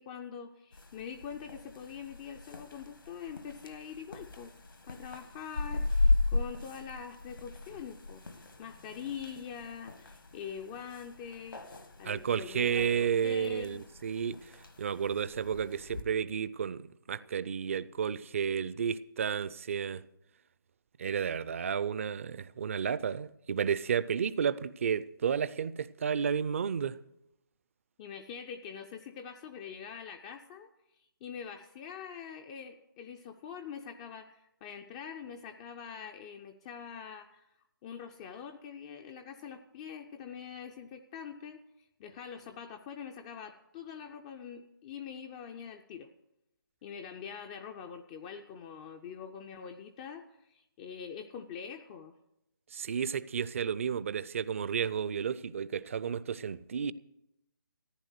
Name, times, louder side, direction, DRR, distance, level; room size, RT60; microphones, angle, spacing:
voice 1, 0.0-4.5 4.9-13.9 28.0-37.5 37.8-41.6 42.0-46.1 46.8-52.2, left 7 dB, 15° left, 0.4 m, -44 dB
sound 1, 0.7-16.0, left 2 dB, 80° left, 1.8 m, -36 dB
voice 2, 12.0-14.5 14.8-20.1 21.0-27.0 52.7-56.9, right 7 dB, 35° right, 0.5 m, -32 dB
14.5 x 9.8 x 6.5 m
figure-of-eight pair, 150°, 12 cm